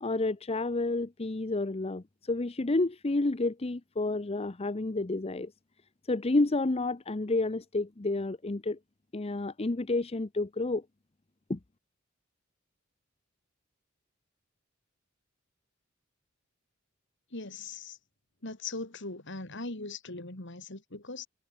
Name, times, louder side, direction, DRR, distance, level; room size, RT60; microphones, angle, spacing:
voice 1, 0.0-5.5 6.1-8.8 9.1-10.8 11.5-11.6, left 2 dB, 30° left, 0.7 m, -30 dB
voice 2, 17.3-18.0 18.4-21.3, left 3 dB, 60° left, 3.5 m, -40 dB
head